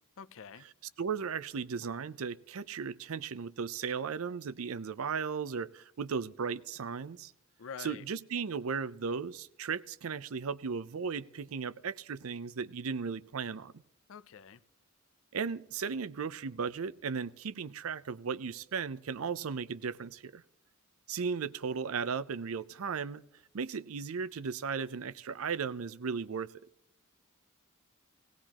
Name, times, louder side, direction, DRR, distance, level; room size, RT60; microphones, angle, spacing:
voice 1, 0.2-0.6 7.6-8.0 14.1-14.6, left 6 dB, 65° left, 0.5 m, -46 dB
voice 2, 1.0-7.3 7.8-13.7 15.3-20.4 21.1-23.2 23.5-26.5, right 5 dB, 75° right, 0.5 m, -36 dB
18.0 x 18.0 x 2.9 m
head